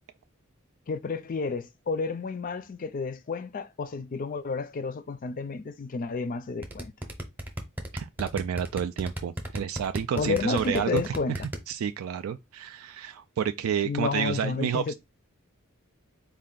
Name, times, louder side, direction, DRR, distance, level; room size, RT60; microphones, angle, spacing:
voice 1, 0.9-6.9 10.1-11.4 13.8-14.9, left 4 dB, 40° left, 0.4 m, -31 dB
sound 1, 6.6-11.6, equal, 10° right, 0.8 m, -34 dB
voice 2, 7.9-11.1 11.7-14.9, right 8 dB, 85° right, 0.3 m, -30 dB
4.2 x 2.5 x 3.8 m
head